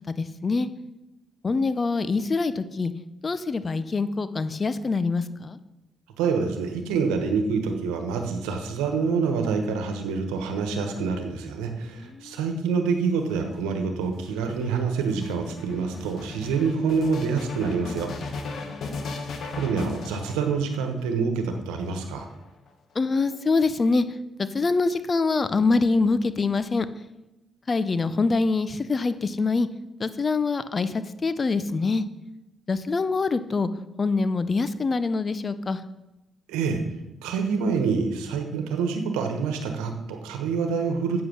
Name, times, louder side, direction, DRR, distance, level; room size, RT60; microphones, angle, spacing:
voice 1, 0.1-0.7 1.4-2.9 3.2-5.6 12.0-12.4 18.6-19.1 22.9-24.0 24.4-26.9 27.7-29.7 30.0-32.0 32.7-33.7 34.0-35.8, left 3 dB, 40° left, 13 dB, 0.7 m, -25 dB
voice 2, 6.2-18.1 19.6-22.3 36.5-36.8 37.2-41.2, right 5 dB, 85° right, 5 dB, 1.2 m, -26 dB
sound 1, 13.1-21.0 21.8-22.7, left 4 dB, 65° left, 1.5 m, -37 dB
8.0 x 7.7 x 6.5 m, 0.96 s
hypercardioid pair, 50°, 0 cm